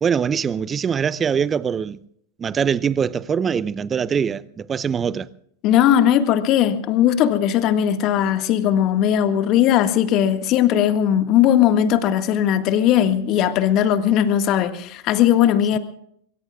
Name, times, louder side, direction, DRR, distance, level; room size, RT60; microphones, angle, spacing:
voice 1, 0.0-2.0 2.4-5.3, right 7 dB, 25° right, 0.7 m, -23 dB
voice 2, 5.6-15.8, left 10 dB, 45° left, 1.8 m, -18 dB
24.0 x 23.5 x 2.4 m
figure-of-eight pair, 90°, 0 cm